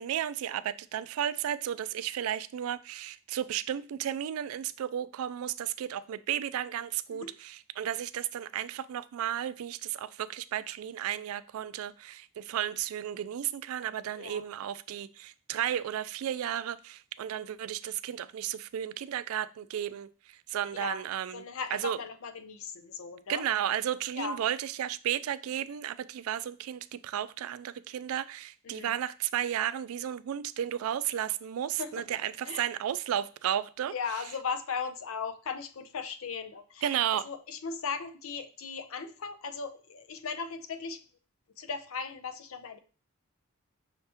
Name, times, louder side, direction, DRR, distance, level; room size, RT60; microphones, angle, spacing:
voice 1, 0.0-21.4 21.7-22.0 23.3-33.9 36.8-37.3, right 10 dB, 85° right, 0.3 m, -33 dB
voice 2, 21.3-23.5 24.1-24.4 28.6-29.0 31.8-32.0 32.5-32.7 33.9-37.0 37.2-41.0 41.6-42.8, left 5 dB, 75° left, 0.5 m, -37 dB
5.5 x 2.9 x 3.4 m
head